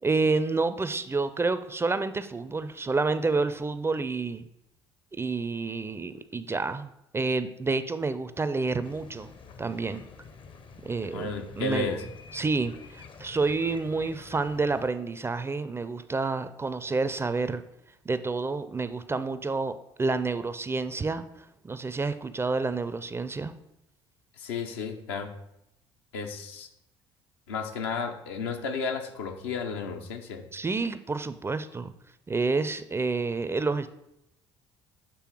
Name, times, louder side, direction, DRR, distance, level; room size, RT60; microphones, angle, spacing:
voice 1, 0.0-4.5 5.1-9.3 9.6-10.1 10.8-11.3 11.6-12.0 12.3-17.6 18.1-21.3 21.6-23.6 30.5-31.9 32.3-33.9, right 3 dB, 20° right, 12 dB, 0.4 m, -29 dB
sound 1, 8.8-14.9, left 5 dB, 35° left, 0.6 m, -48 dB
voice 2, 11.1-12.0 24.4-25.3 26.1-26.7 27.5-30.5, left 4 dB, 75° left, 4 dB, 0.7 m, -33 dB
7.7 x 3.3 x 4.5 m, 0.82 s
hypercardioid pair, 55°, 14 cm